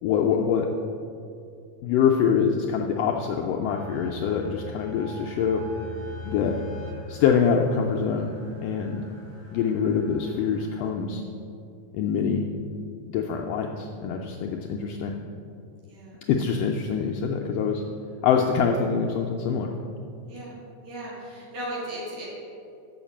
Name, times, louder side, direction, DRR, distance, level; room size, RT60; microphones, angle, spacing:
voice 1, 0.0-0.7 1.8-5.6 6.2-6.6 7.1-8.3 8.6-9.0 9.5-11.2 11.9-12.4 13.1-15.2 16.3-17.8 18.2-19.7, left 7 dB, 80° left, 1 dB, 1.4 m, -24 dB
sound 1, 3.6-10.9, left 1 dB, 45° right, 2.3 m, -43 dB
voice 2, 20.8-22.3, right 1 dB, 80° right, -6 dB, 3.7 m, -36 dB
7.0 x 5.8 x 7.2 m, 2.5 s
omnidirectional pair, 3.3 m